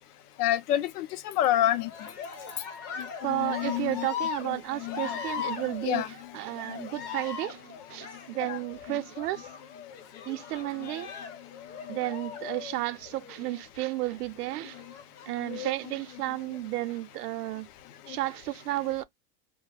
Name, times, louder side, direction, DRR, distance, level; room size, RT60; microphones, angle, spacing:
voice 1, 0.4-1.9 3.0-4.1 4.8-4.9 5.9-6.1 6.7-6.8 8.5-8.6 15.5-15.7 18.1-18.2, left 12 dB, 80° left, 0.6 m, -28 dB
Cheering, 1.8-13.5 14.7-15.6 16.3-17.0, left 7 dB, 35° left, 0.6 m, -39 dB
voice 2, 3.2-9.5 10.3-11.1 11.9-14.8 15.3-17.7 18.1-19.0, right 17 dB, 80° right, 0.6 m, -33 dB
2.4 x 2.1 x 3.2 m
supercardioid pair, 150°, 45 cm